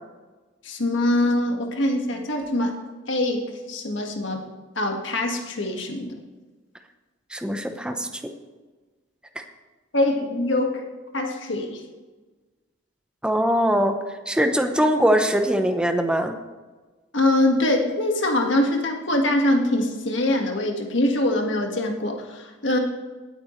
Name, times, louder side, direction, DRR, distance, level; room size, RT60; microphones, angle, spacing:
voice 1, 0.6-2.8 3.1-4.4 4.8-6.1 9.9-10.9 11.1-11.8 17.1-22.8, left 1 dB, 65° left, 2 dB, 1.8 m, -23 dB
voice 2, 7.3-8.3 13.2-14.0 14.3-16.4, equal, 5° right, 6 dB, 0.8 m, -22 dB
18.5 x 9.0 x 3.2 m, 1.3 s
head